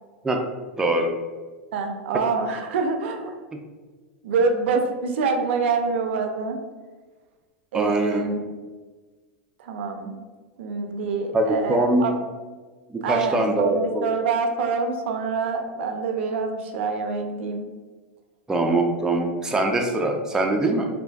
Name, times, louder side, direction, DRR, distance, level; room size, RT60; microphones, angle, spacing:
voice 1, 0.8-1.1 7.7-8.2 11.3-12.0 12.9-14.1 18.5-20.9, right 2 dB, 10° right, 1 dB, 0.4 m, -22 dB
voice 2, 1.7-3.3 4.2-6.6 7.7-8.4 9.6-10.2 10.6-12.1 13.0-17.6, right 4 dB, 75° right, 5 dB, 0.4 m, -26 dB
3.3 x 2.5 x 2.2 m, 1.3 s
hypercardioid pair, 105°, 7 cm